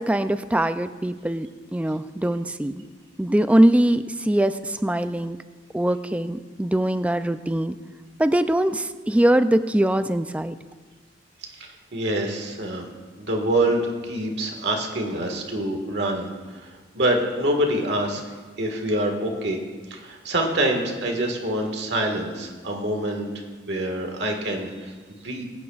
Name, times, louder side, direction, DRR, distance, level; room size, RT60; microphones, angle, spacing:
voice 1, 0.0-2.8 3.2-5.4 5.7-7.8 8.2-10.6, right 1 dB, 5° right, 11 dB, 0.3 m, -22 dB
voice 2, 11.6-12.9 13.2-19.6 19.9-23.3 23.7-25.4, right 1 dB, 65° right, 2 dB, 1.7 m, -26 dB
21.5 x 9.6 x 2.4 m, 1.4 s
head